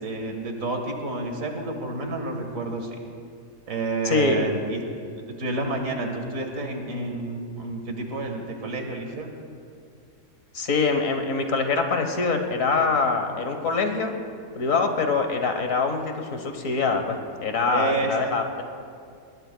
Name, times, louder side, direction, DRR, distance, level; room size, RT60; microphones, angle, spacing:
voice 1, 0.0-3.0 3.7-4.8 5.4-9.3 17.7-18.1, right 3 dB, 65° right, 3 dB, 1.9 m, -29 dB
voice 2, 4.0-4.6 10.5-14.1 14.5-18.6, left 4 dB, 65° left, 5 dB, 1.5 m, -24 dB
20.0 x 20.0 x 2.2 m, 2.3 s
omnidirectional pair, 1.5 m